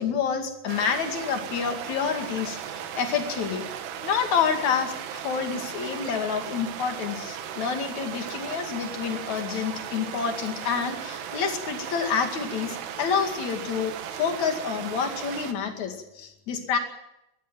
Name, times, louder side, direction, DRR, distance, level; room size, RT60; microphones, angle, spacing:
voice 1, 0.0-3.7 4.0-16.8, left 6 dB, 45° left, 5 dB, 2.9 m, -28 dB
sound 1, 0.7-15.5, right 9 dB, 65° right, 3.2 m, -36 dB
20.5 x 14.0 x 9.2 m, 0.87 s
omnidirectional pair, 5.6 m